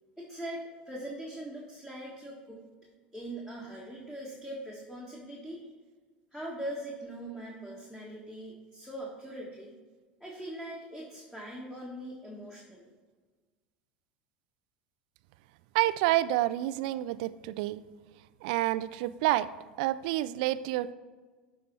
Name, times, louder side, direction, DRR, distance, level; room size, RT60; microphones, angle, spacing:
voice 1, 0.2-2.6 3.1-5.7 6.3-9.8 10.2-12.9, right 1 dB, 5° left, -4 dB, 1.6 m, -41 dB
voice 2, 15.7-17.8 18.4-19.5 19.8-20.9, right 15 dB, 60° right, 15 dB, 0.3 m, -28 dB
12.0 x 4.3 x 4.2 m, 1.4 s
hypercardioid pair, 80°, 5 cm